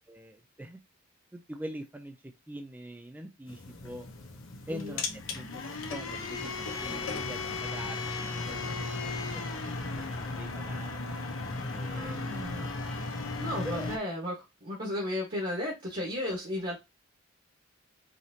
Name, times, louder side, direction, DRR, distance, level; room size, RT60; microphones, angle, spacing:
voice 1, 0.1-0.8 1.3-4.1 4.7-5.0 5.3-9.6 9.9-11.0 11.7-12.2 13.6-13.9, right 1 dB, 10° right, 7 dB, 0.3 m, -44 dB
sound 1, 3.5-14.0, left 3 dB, 70° left, 0.9 m, -36 dB
voice 2, 4.7-5.0 11.9-12.8 13.4-16.8, left 1 dB, 45° right, -2 dB, 1.4 m, -35 dB
4.9 x 2.8 x 2.7 m, 0.23 s
head